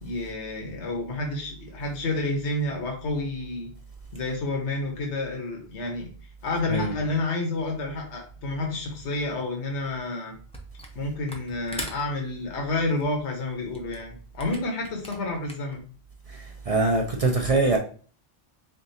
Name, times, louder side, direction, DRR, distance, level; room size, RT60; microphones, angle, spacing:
voice 1, 0.0-3.7 4.1-6.1 6.4-10.4 10.9-15.8, left 2 dB, 80° left, 1.2 m, -29 dB
Camera, 10.5-11.0 11.2-15.8, left 1 dB, 5° left, 0.5 m, -40 dB
voice 2, 16.3-17.8, right 3 dB, 50° right, 0.4 m, -23 dB
3.8 x 3.4 x 2.7 m
omnidirectional pair, 1.1 m